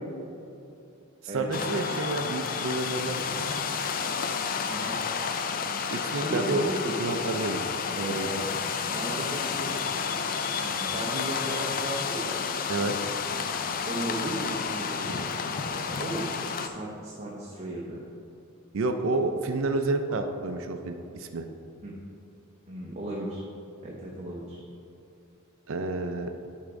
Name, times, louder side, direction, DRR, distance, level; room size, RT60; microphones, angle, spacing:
voice 1, 1.3-3.5 5.9-6.7 7.0-7.6 8.0-8.3 12.7-13.0 18.7-21.5 25.7-26.3, right 2 dB, 65° right, 6 dB, 0.4 m, -29 dB
sound 1, 1.5-16.7, left 6 dB, 40° left, 0.3 m, -31 dB
voice 2, 6.1-7.3 7.9-8.5 8.9-9.8 10.6-12.3 13.9-15.3 15.6-16.3 16.6-18.0 20.1-20.2 21.8-22.0 22.7-23.4 23.8-24.6, right 1 dB, 30° right, -4 dB, 0.8 m, -35 dB
9.7 x 3.6 x 5.1 m, 2.7 s
head